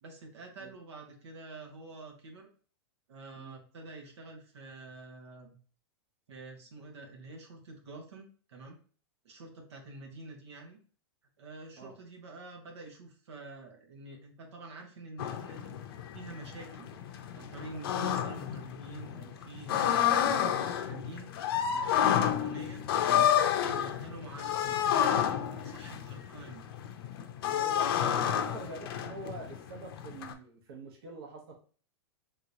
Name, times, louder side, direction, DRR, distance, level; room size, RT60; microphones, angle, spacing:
voice 1, 0.0-2.5 3.1-5.5 6.3-8.8 9.2-10.8 11.4-15.8 16.1-16.9 17.3-21.3 21.7-22.8 23.4-26.6 27.8-28.6, right 2 dB, 90° right, 2 dB, 1.2 m, -47 dB
sound 1, 15.2-30.3, left 9 dB, 60° left, 0.5 m, -30 dB
voice 2, 27.4-31.5, right 3 dB, 60° right, 0 dB, 1.0 m, -45 dB
3.6 x 3.0 x 2.6 m, 0.40 s
supercardioid pair, 145°, 14 cm